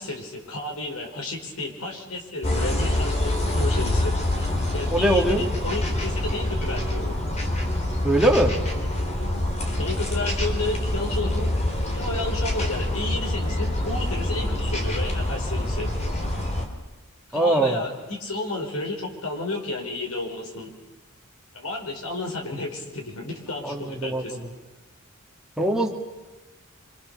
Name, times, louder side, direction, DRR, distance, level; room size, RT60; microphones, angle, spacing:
voice 1, 0.0-7.2 9.8-11.5 11.9-15.9 17.3-20.7 21.5-24.4, left 2 dB, 70° left, 2 dB, 5.0 m, -32 dB
sound 1, 2.4-16.7, left 1 dB, 30° left, 3.5 m, -26 dB
voice 2, 4.9-5.4 8.0-8.5 17.3-17.8 23.6-24.2 25.6-25.9, right 1 dB, ahead, 0 dB, 2.6 m, -21 dB
26.5 x 26.0 x 6.9 m, 1.2 s
head